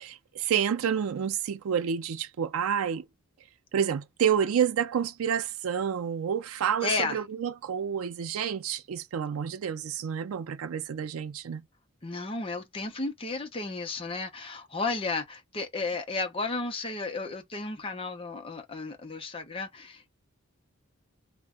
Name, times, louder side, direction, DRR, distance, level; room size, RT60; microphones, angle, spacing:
voice 1, 0.0-3.1 3.7-11.6, right 8 dB, 90° right, 0.4 m, -29 dB
voice 2, 6.8-7.2 12.0-20.1, left 3 dB, 25° left, 0.6 m, -33 dB
2.5 x 2.1 x 3.6 m
head